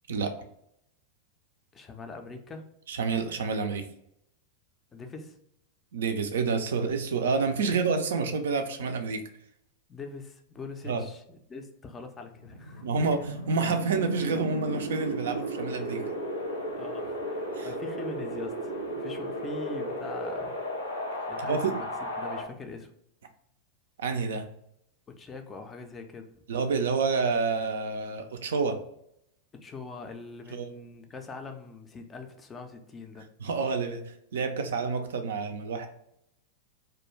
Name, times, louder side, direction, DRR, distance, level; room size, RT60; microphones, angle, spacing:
voice 1, 1.7-2.7 4.9-5.4 9.9-13.1 16.7-20.6 21.3-22.9 25.1-26.4 29.6-33.3, left 3 dB, 20° left, 5 dB, 0.4 m, -42 dB
voice 2, 2.9-3.9 5.9-9.2 10.9-11.0 12.8-13.2 13.5-16.0 17.6-17.7 21.5-21.6 24.0-24.5 26.5-28.8 30.5-30.7 33.4-35.9, right 4 dB, 60° right, 7 dB, 0.3 m, -28 dB
Wind, 12.2-22.4, equal, 80° left, 0.7 m, -34 dB
2.3 x 2.2 x 3.0 m, 0.74 s
figure-of-eight pair, 90°, 0 cm